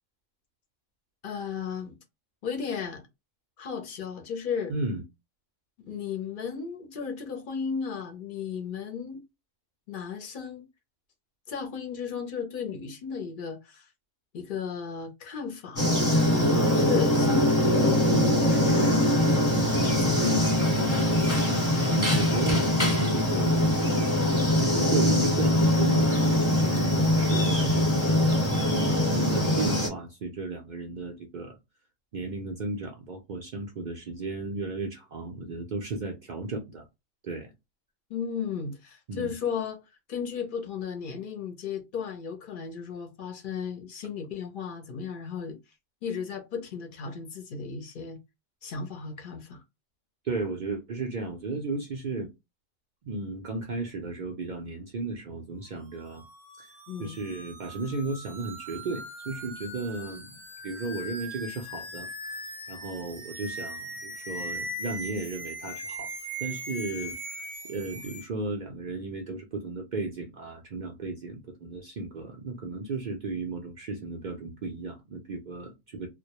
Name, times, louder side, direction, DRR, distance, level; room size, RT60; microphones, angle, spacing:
voice 1, 1.2-2.0 2.4-3.0 3.6-4.7 5.9-9.2 9.9-10.6 11.5-13.9 14.3-19.0 19.8-20.5 38.1-39.8 40.1-45.6 46.0-48.2 48.6-49.6 56.9-57.1, left 6 dB, 55° left, 0.6 m, -35 dB
voice 2, 4.7-5.0 20.2-20.5 21.2-21.4 21.9-23.8 24.2-31.5 32.1-36.9 37.2-37.5 39.1-39.3 50.2-52.3 53.0-56.2 56.6-62.1 62.7-66.1 66.4-76.1, right 3 dB, 75° right, 0.4 m, -34 dB
sound 1, 15.8-29.9, left 1 dB, 15° left, 0.8 m, -23 dB
sound 2, 56.0-68.3, equal, 5° right, 0.5 m, -40 dB
2.1 x 2.1 x 2.8 m
omnidirectional pair, 1.3 m